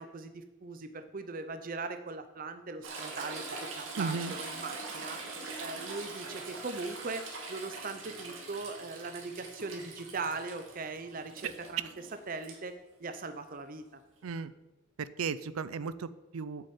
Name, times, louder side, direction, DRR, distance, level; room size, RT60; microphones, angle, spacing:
voice 1, 0.0-3.5 3.8-5.2 5.6-11.9 12.3-13.8, right 3 dB, 40° right, 9 dB, 0.6 m, -40 dB
Toilet flush / Trickle dribble, 2.8-12.6 14.4-14.5, right 3 dB, 65° right, 2.5 m, -43 dB
voice 2, 4.0-4.3 11.8-11.9 14.2-14.5 15.0-16.7, right 5 dB, 85° right, 15 dB, 0.5 m, -35 dB
8.6 x 6.5 x 8.5 m, 1.1 s
head